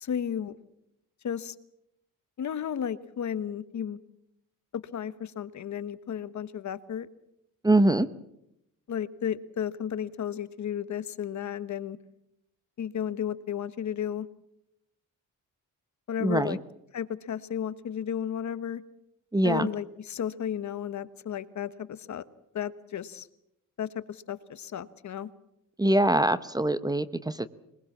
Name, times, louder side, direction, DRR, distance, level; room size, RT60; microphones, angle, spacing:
voice 1, 0.0-0.6 1.2-1.5 2.4-4.0 4.7-7.1 8.9-12.0 12.8-14.3 16.1-16.6 16.9-18.8 19.4-22.2 22.5-23.3 23.8-25.3, left 9 dB, 60° left, 14 dB, 1.2 m, -33 dB
voice 2, 7.6-8.1 16.2-16.6 19.3-19.7 25.8-27.5, right 1 dB, 10° right, 14 dB, 0.8 m, -23 dB
22.5 x 21.0 x 7.2 m, 0.81 s
cardioid pair, 125°, 33 cm